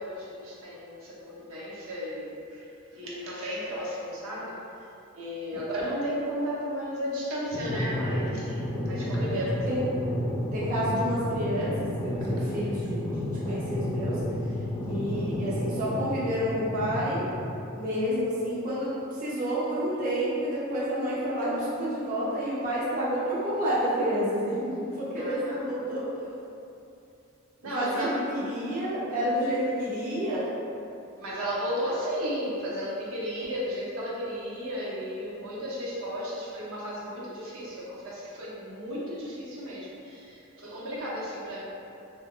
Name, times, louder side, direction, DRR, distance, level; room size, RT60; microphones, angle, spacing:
voice 1, 0.0-4.5 5.1-8.6 8.8-9.5 25.2-25.7 27.6-28.1 31.2-41.6, equal, 75° right, -7 dB, 0.8 m, -34 dB
sound 1, 7.5-17.5, equal, 20° left, 0.3 m, -31 dB
voice 2, 10.5-14.5 14.9-17.3 17.7-26.1 27.7-30.5, equal, 40° right, -9 dB, 0.6 m, -29 dB
2.8 x 2.1 x 3.7 m, 2.7 s
head